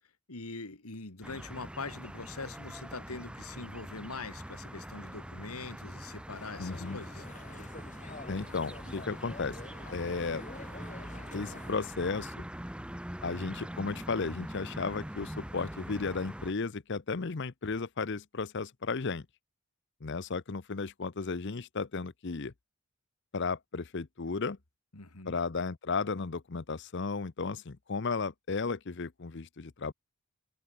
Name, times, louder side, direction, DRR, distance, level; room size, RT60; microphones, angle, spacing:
voice 1, 0.3-7.3 24.9-25.4, left 3 dB, 85° left, 2.4 m, -43 dB
sound 1, 1.2-16.5, equal, 5° right, 1.3 m, -43 dB
sound 2, 6.3-11.8, left 3 dB, 35° left, 2.0 m, -48 dB
voice 2, 6.6-7.0 8.3-9.6 9.9-10.4 11.3-12.5 13.2-19.3 20.0-22.5 23.3-24.6 25.3-29.9, left 4 dB, 55° left, 0.7 m, -34 dB
head